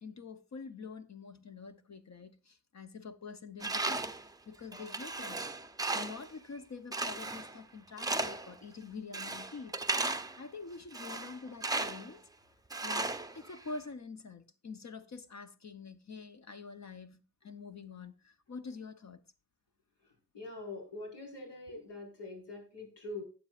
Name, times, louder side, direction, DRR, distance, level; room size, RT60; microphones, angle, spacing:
voice 1, 0.0-4.1 4.5-5.5 5.9-9.8 10.4-12.2 12.8-19.2, left 4 dB, 40° left, 0.9 m, -46 dB
Tools, 3.6-4.3 4.7-6.3 6.9-7.6 8.0-8.5 9.1-10.4 10.9-12.1 12.7-13.8, right 2 dB, 10° right, 0.6 m, -35 dB
voice 2, 20.3-23.2, left 2 dB, 80° left, 4.7 m, -44 dB
15.0 x 9.2 x 2.4 m
wide cardioid pair, 135°, 41 cm